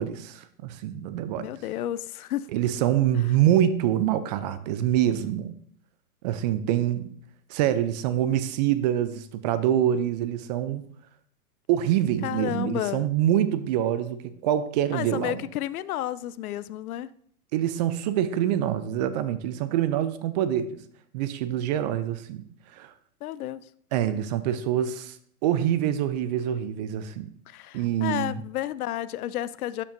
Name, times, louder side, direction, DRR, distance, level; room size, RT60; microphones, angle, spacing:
voice 1, 0.0-1.5 2.5-5.6 6.2-7.1 7.5-10.8 11.7-15.4 17.5-20.8 21.1-22.4 22.7-22.9 23.9-25.2 25.4-27.3 27.7-28.4, right 11 dB, 30° right, 13 dB, 0.4 m, -25 dB
voice 2, 1.4-2.5 12.2-13.1 14.9-17.1 23.2-23.6 27.5-29.8, left 13 dB, 75° left, 17 dB, 0.5 m, -31 dB
12.0 x 5.3 x 2.6 m, 0.63 s
hypercardioid pair, 115°, 44 cm